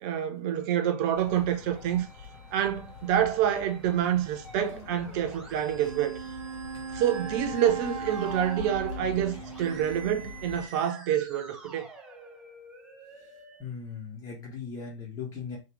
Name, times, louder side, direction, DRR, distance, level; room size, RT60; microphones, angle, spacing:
voice 1, 0.0-2.1 2.5-6.2 6.9-11.9, right 10 dB, 35° right, 0.7 m, -27 dB
Musical instrument, 0.6-13.6, right 3 dB, 5° right, 1.0 m, -49 dB
sound 1, 1.1-10.7, left 6 dB, 50° left, 1.4 m, -45 dB
Wind instrument woodwind instrument, 5.7-10.6, right 5 dB, 85° right, 0.4 m, -39 dB
voice 2, 13.6-15.6, left 6 dB, 20° left, 1.5 m, -38 dB
3.4 x 3.1 x 3.1 m
figure-of-eight pair, 105°, 18 cm